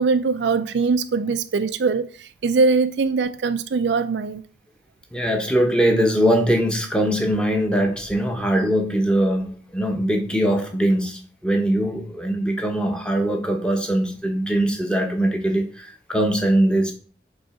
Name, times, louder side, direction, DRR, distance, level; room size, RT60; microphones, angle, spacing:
voice 1, 0.0-4.4, right 4 dB, 85° right, 0.4 m, -22 dB
voice 2, 5.1-16.9, right 1 dB, 5° left, 1.0 m, -21 dB
5.3 x 3.9 x 5.6 m
head